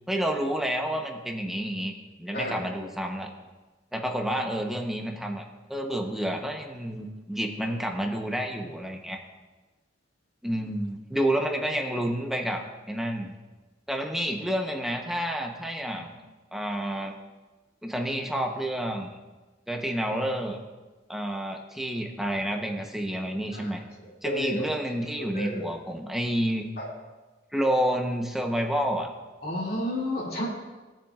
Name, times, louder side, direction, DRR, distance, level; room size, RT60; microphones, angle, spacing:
voice 1, 0.1-3.3 3.9-5.4 5.7-9.2 10.4-13.3 13.9-16.2 16.5-17.2 17.8-19.1 19.7-20.6 21.1-23.8 24.2-26.7 27.5-29.1, equal, ahead, 2 dB, 0.9 m, -29 dB
voice 2, 24.2-24.7 25.3-25.6 26.8-26.9 29.4-30.5, left 1 dB, 55° left, -5 dB, 2.5 m, -31 dB
18.5 x 7.2 x 2.5 m, 1.2 s
head